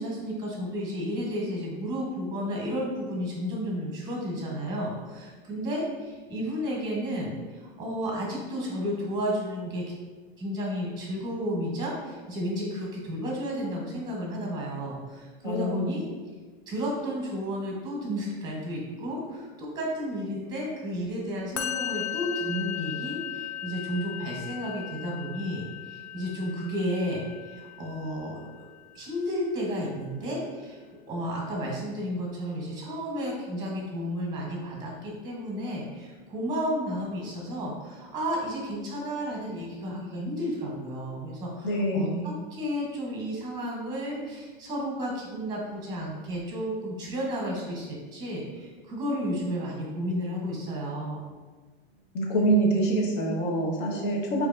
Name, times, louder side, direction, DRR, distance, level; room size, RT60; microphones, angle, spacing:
voice 1, 0.0-9.9 10.4-16.1 16.7-28.7 28.9-30.8 31.1-51.3, equal, 15° right, -2 dB, 0.9 m, -32 dB
voice 2, 15.4-16.0 41.6-42.3 52.1-54.5, right 1 dB, 55° left, -1 dB, 1.1 m, -25 dB
Musical instrument, 21.6-28.8, left 10 dB, 80° left, 0.6 m, -37 dB
4.5 x 2.7 x 2.5 m, 1.4 s
hypercardioid pair, 115°, 32 cm